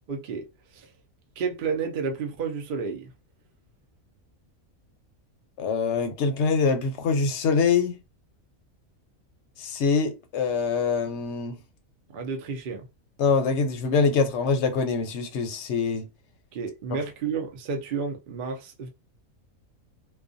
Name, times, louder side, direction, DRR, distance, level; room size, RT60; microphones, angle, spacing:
voice 1, 0.1-0.4 0.7-0.9 1.4-3.1 12.1-12.9 16.5-18.9, right 5 dB, 60° right, 0.5 m, -31 dB
voice 2, 5.6-8.0 9.6-11.6 13.2-16.1, left 5 dB, 65° left, 0.8 m, -24 dB
2.4 x 2.2 x 2.5 m
omnidirectional pair, 1.4 m